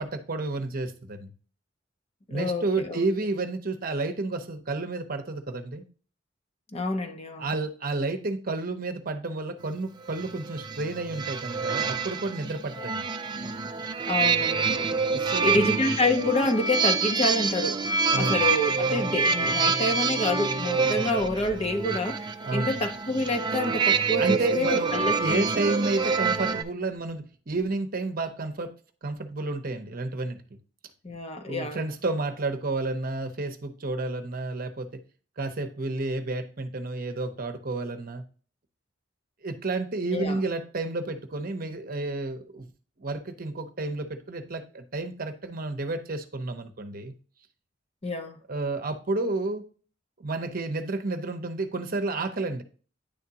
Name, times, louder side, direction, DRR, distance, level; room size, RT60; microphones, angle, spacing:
voice 1, 0.0-1.3 2.3-5.8 7.4-13.0 15.1-15.7 18.1-18.5 20.9-21.2 22.4-22.9 24.2-28.7 29.0-30.4 31.4-35.0 35.4-38.2 39.4-42.7 43.0-47.1 48.5-49.6 50.2-52.6, right 2 dB, 50° right, 0.8 m, -31 dB
voice 2, 2.3-3.0 6.7-7.5 12.8-12.9 14.1-15.0 15.4-17.8 18.2-22.2 22.5-25.4 31.0-31.9 40.1-40.4 48.0-48.4, left 2 dB, 30° left, 0.8 m, -28 dB
sound 1, 10.1-26.6, right 5 dB, 25° right, 0.4 m, -27 dB
10.0 x 3.6 x 2.9 m
head